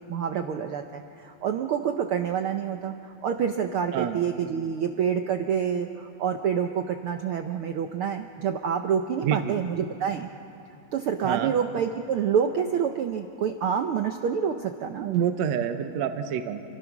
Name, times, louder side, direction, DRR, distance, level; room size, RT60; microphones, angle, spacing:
voice 1, 0.1-10.3 10.9-15.1, right 7 dB, 85° right, 6 dB, 1.2 m, -27 dB
voice 2, 9.2-9.6 11.2-11.5 15.0-16.6, right 9 dB, 70° right, 7 dB, 2.1 m, -27 dB
28.0 x 25.0 x 6.0 m, 2.9 s
omnidirectional pair, 3.5 m